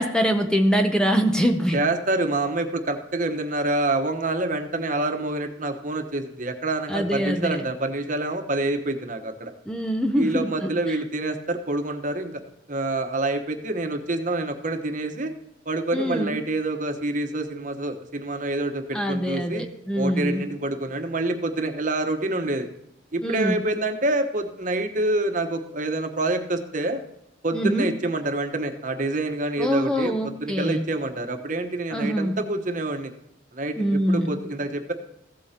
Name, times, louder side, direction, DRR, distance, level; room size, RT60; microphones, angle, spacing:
voice 1, 0.0-1.8 6.9-7.6 9.7-11.0 15.9-16.4 18.9-20.4 23.2-23.6 27.5-27.9 29.6-30.8 31.9-32.4 33.8-34.4, equal, 5° left, 5 dB, 0.6 m, -24 dB
voice 2, 1.7-9.5 10.1-12.4 12.7-15.3 15.7-19.6 19.9-22.7 23.1-27.0 27.4-33.1 33.5-34.9, right 2 dB, 45° right, 6 dB, 1.1 m, -27 dB
15.5 x 8.4 x 2.9 m, 0.84 s
head